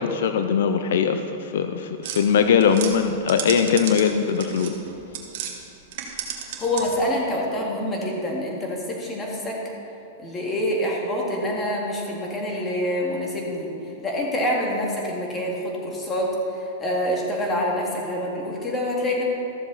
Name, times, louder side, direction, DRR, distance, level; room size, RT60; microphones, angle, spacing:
voice 1, 0.0-4.8, left 7 dB, 75° left, 8 dB, 0.5 m, -21 dB
sound 1, 2.0-5.5 5.9-7.1, right 8 dB, 60° right, 1.4 m, -34 dB
voice 2, 6.6-9.6 10.2-13.7 14.0-19.2, equal, 15° left, -2 dB, 2.0 m, -26 dB
13.5 x 7.2 x 4.0 m, 2.7 s
hypercardioid pair, 140°, 0 cm